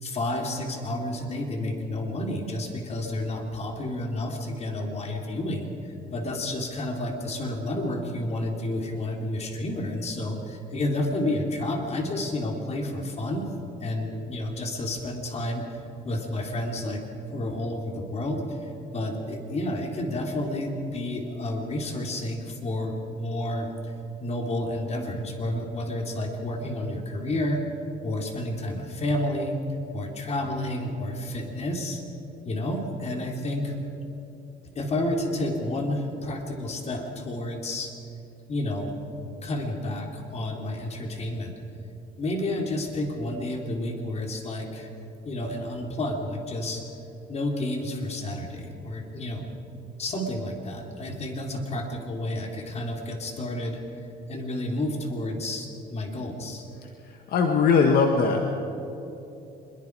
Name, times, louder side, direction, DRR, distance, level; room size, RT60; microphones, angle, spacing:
voice 1, 0.0-13.5 13.8-17.0 17.3-23.9 24.2-27.6 28.0-29.6 29.9-32.0 32.4-33.8 34.8-37.9 38.5-38.9 39.4-41.5 42.2-44.9 45.3-46.8 47.3-49.5 50.0-53.8 54.3-56.7, left 1 dB, 40° left, 2 dB, 3.5 m, -30 dB
voice 2, 57.0-58.4, left 5 dB, 65° left, 3 dB, 1.7 m, -21 dB
25.5 x 22.0 x 4.8 m, 2.9 s
cardioid pair, 110°, 17 cm